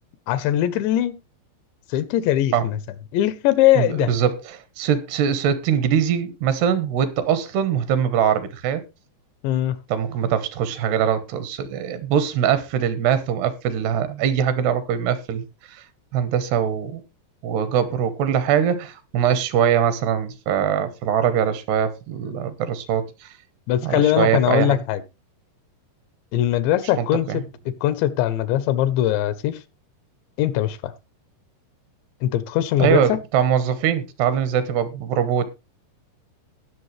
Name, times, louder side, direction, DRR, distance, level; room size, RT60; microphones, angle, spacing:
voice 1, 0.3-1.2 1.9-2.8 3.1-4.1 9.4-9.8 23.7-25.0 26.3-27.4 27.8-29.6 30.4-30.9 32.2-33.2, left 12 dB, 90° left, 3.2 m, -21 dB
voice 2, 3.8-8.8 9.9-15.8 16.1-17.0 17.4-23.3 23.8-24.8 27.0-27.4 32.8-35.5, right 8 dB, 75° right, 3.0 m, -22 dB
19.0 x 6.5 x 3.2 m
omnidirectional pair, 5.0 m